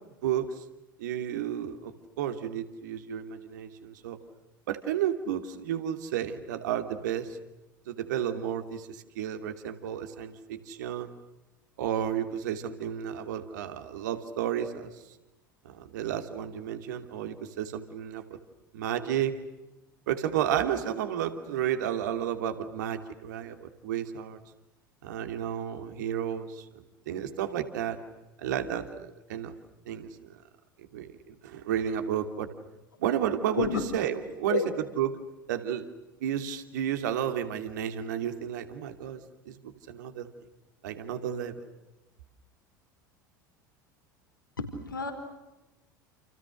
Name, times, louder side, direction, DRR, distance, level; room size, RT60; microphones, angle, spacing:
voice 1, 0.2-0.6 1.0-4.2 4.7-7.4 7.9-11.1 11.8-14.9 15.6-18.4 18.7-19.4 20.1-24.4 25.0-26.6 27.1-28.0 28.4-29.5 29.9-30.4 30.9-32.5 33.0-34.6 35.0-35.2 35.5-35.9 36.2-40.3 40.8-41.6, right 10 dB, 60° right, 8 dB, 2.9 m, -32 dB
voice 2, 44.6-45.1, left 5 dB, 80° left, 5 dB, 4.7 m, -29 dB
29.5 x 29.5 x 6.5 m, 1.0 s
figure-of-eight pair, 75°, 11 cm